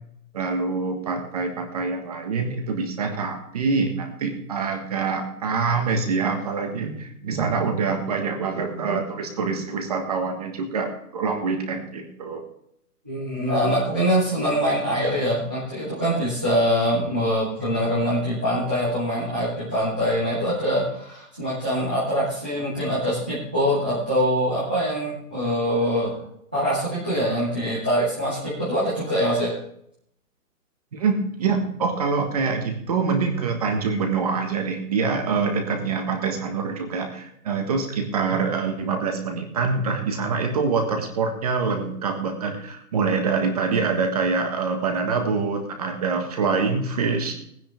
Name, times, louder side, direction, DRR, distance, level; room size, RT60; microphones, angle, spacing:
voice 1, 0.3-12.4 30.9-47.3, right 4 dB, 25° right, 5 dB, 1.5 m, -25 dB
voice 2, 13.0-26.1 26.5-29.6, equal, 5° right, -10 dB, 0.7 m, -24 dB
18.5 x 10.0 x 3.4 m, 0.71 s
hypercardioid pair, 175°, 47 cm